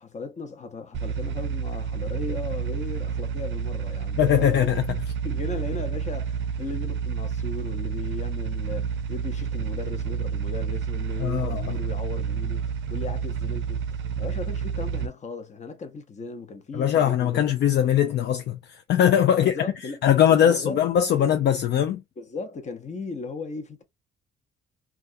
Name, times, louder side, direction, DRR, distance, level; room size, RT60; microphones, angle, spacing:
voice 1, 0.0-4.7 5.2-13.9 14.2-17.5 19.3-20.8 21.2-21.3 22.2-23.8, left 3 dB, 35° left, 0.7 m, -37 dB
sound 1, 0.9-15.1, right 6 dB, 70° right, 0.4 m, -29 dB
voice 2, 4.2-4.8 11.2-11.6 16.7-19.5 20.0-22.0, left 10 dB, 60° left, 0.4 m, -21 dB
2.3 x 2.3 x 2.6 m
cardioid pair, 90°, 20 cm